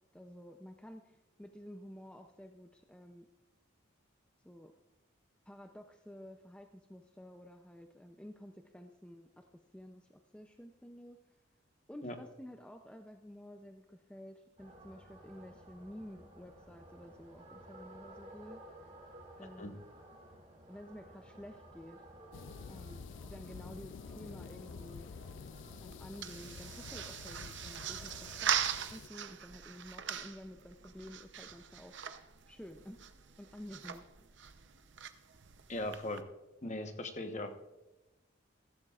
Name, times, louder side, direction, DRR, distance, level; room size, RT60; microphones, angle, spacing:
voice 1, 0.1-3.3 4.4-4.7 5.5-11.2 11.9-18.9 19.4-19.9 20.7-22.1 22.7-25.1 25.8-28.5 28.9-32.0 32.5-33.0 33.4-34.0 34.4-34.5, equal, 5° left, 5 dB, 0.5 m, -51 dB
sound 1, 14.6-28.8, right 1 dB, 35° right, 2.4 m, -56 dB
sound 2, 22.3-29.1, left 5 dB, 65° left, 0.4 m, -49 dB
sound 3, 25.3-36.2, right 9 dB, 60° right, 0.7 m, -41 dB
voice 2, 35.7-36.2 36.6-37.5, left 1 dB, 35° left, 6 dB, 1.1 m, -39 dB
15.0 x 14.0 x 2.4 m, 1.0 s
head